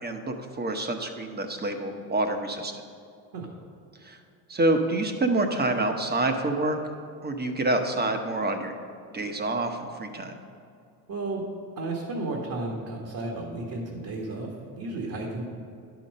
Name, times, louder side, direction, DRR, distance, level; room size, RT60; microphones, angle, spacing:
voice 1, 0.0-2.8 4.0-4.2 4.5-6.8 7.2-8.7 9.1-10.4, right 2 dB, 20° right, 5 dB, 1.1 m, -27 dB
voice 2, 11.1-11.4 11.8-14.5 14.8-15.4, right 2 dB, 50° right, -2 dB, 1.8 m, -33 dB
10.5 x 6.0 x 5.4 m, 2.5 s
supercardioid pair, 85°, 44 cm